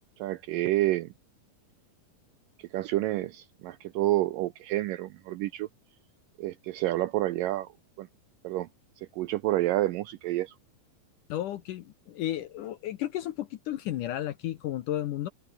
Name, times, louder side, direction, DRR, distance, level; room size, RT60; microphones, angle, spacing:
voice 1, 0.2-1.1 2.6-5.7 6.4-7.7 8.0-8.1 8.4-8.7 9.0-10.6, right 16 dB, 80° right, 2.0 m, -29 dB
voice 2, 11.3-15.3, left 13 dB, 70° left, 2.1 m, -33 dB
omnidirectional pair, 4.6 m